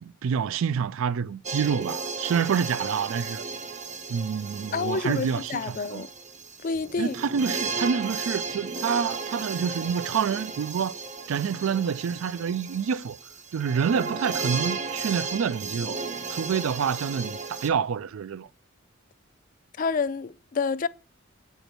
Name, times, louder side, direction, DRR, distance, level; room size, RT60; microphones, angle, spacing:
voice 1, 0.0-3.4 4.1-6.0 7.0-11.0 11.3-13.2 13.5-16.0 16.3-18.5, right 7 dB, 75° right, 0.4 m, -27 dB
sound 1, 1.4-17.7, right 4 dB, 35° right, 0.7 m, -34 dB
voice 2, 4.7-6.1 6.6-7.2 19.8-20.9, left 5 dB, 40° left, 0.4 m, -28 dB
7.8 x 4.5 x 6.6 m
head